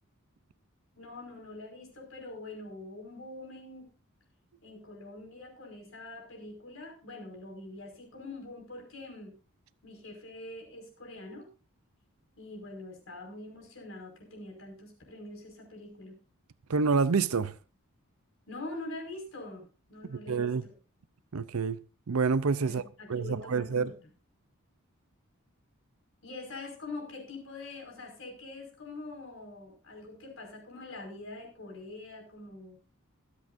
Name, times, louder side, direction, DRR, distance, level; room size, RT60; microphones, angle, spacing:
voice 1, 1.0-3.9 4.6-9.3 9.8-11.5 12.4-16.2 18.5-20.7 22.6-23.9 26.2-32.8, left 2 dB, 65° left, 5.4 m, -44 dB
voice 2, 16.7-17.5 20.1-20.7 21.3-21.8 22.1-23.9, right 5 dB, 80° right, 0.6 m, -28 dB
25.5 x 8.5 x 2.6 m
head